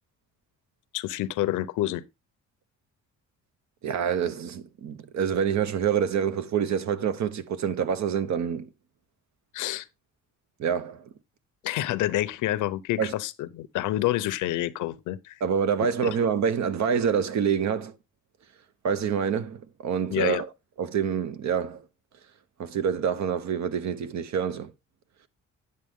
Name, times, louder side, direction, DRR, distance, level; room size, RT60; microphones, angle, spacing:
voice 1, 0.9-2.0 9.5-9.9 11.6-15.4 16.0-16.1 20.1-20.4, left 15 dB, 90° left, 0.7 m, -28 dB
voice 2, 3.8-8.7 10.6-11.0 13.0-13.1 15.4-17.9 18.8-20.5 20.8-21.8 22.6-24.7, right 7 dB, 65° right, 1.0 m, -26 dB
9.6 x 6.7 x 3.6 m
cardioid pair, 90°, 30 cm